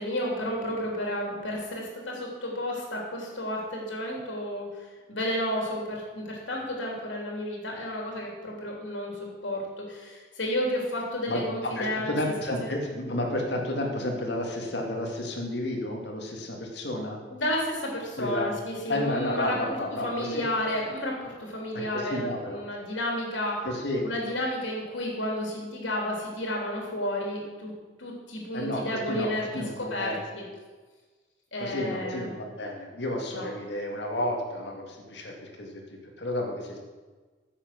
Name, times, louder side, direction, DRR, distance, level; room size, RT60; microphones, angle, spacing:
voice 1, 0.0-12.3 12.6-12.7 17.3-23.7 24.0-27.7 28.0-30.4 31.5-32.3 33.3-33.5, left 1 dB, 85° left, 0 dB, 3.1 m, -32 dB
voice 2, 11.3-17.2 18.2-18.5 18.9-20.4 21.9-22.6 23.6-24.0 28.5-30.2 31.6-36.8, left 1 dB, 65° left, 1 dB, 2.1 m, -31 dB
10.0 x 7.7 x 6.0 m, 1.4 s
head